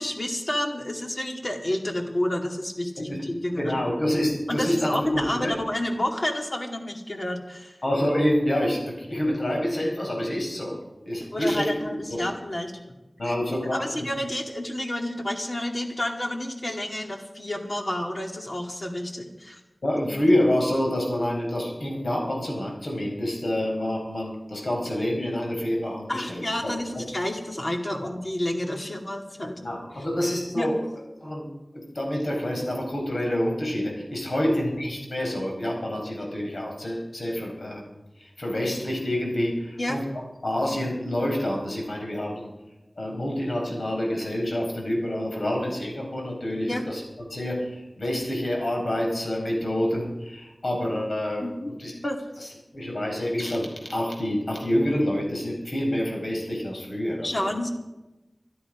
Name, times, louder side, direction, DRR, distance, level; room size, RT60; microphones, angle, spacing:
voice 1, 0.0-3.6 4.5-7.8 11.3-12.9 13.2-13.4 13.7-19.6 26.1-29.7 30.5-30.7 34.4-34.5 39.8-40.0 46.7-46.8 51.4-51.7 52.0-52.5 57.2-57.7, left 1 dB, 45° left, 2 dB, 2.3 m, -29 dB
voice 2, 3.6-5.5 7.8-10.8 11.0-12.3 13.2-13.9 19.8-26.7 29.6-30.8 31.2-31.5 31.7-40.0 40.4-42.5 43.0-47.0 47.3-51.9 52.4-52.5 52.7-57.5, left 1 dB, 85° left, 0 dB, 4.5 m, -27 dB
25.0 x 10.0 x 5.0 m, 1.0 s
wide cardioid pair, 60°, 0 cm